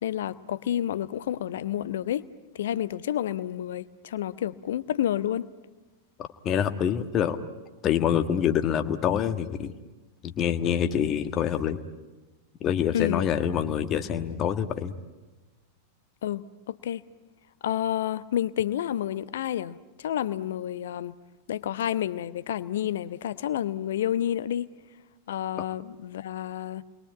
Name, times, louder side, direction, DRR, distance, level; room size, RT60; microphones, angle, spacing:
voice 1, 0.0-2.3 2.5-5.5 12.9-13.3 16.2-17.0 17.6-21.1 21.5-24.7 25.3-26.8, left 11 dB, 60° left, 0.9 m, -30 dB
voice 2, 6.4-7.4 7.8-9.7 10.2-11.8 12.6-14.9, left 9 dB, 30° left, 1.4 m, -26 dB
29.5 x 22.0 x 9.0 m
figure-of-eight pair, 90°, 0 cm